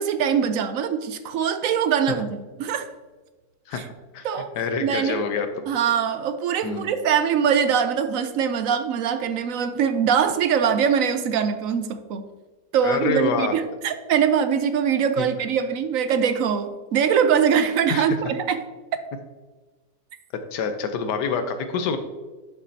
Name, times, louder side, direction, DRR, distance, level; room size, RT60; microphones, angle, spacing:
voice 1, 0.0-2.9 3.7-3.8 4.2-4.5 4.8-5.2 5.7-12.3 12.7-18.6, right 7 dB, 70° right, 0.8 m, -22 dB
voice 2, 4.6-5.7 6.6-6.9 12.8-13.6 15.2-15.3 17.9-18.1 20.5-22.0, left 5 dB, 80° left, 1.4 m, -26 dB
11.0 x 6.1 x 2.8 m
omnidirectional pair, 1.8 m